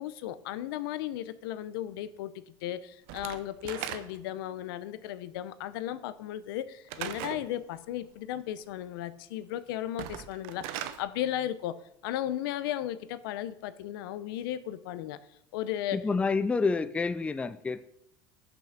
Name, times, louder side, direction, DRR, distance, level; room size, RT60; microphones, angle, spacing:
voice 1, 0.0-11.8 12.0-15.2 15.5-16.0, left 12 dB, 85° left, 14 dB, 0.6 m, -35 dB
Slam / Wood, 3.1-4.4 6.9-7.5 9.9-11.0, right 11 dB, 70° right, 0.7 m, -38 dB
voice 2, 15.9-17.9, left 4 dB, 10° left, 13 dB, 0.4 m, -28 dB
6.0 x 5.7 x 6.6 m, 0.75 s
supercardioid pair, 130°, 12 cm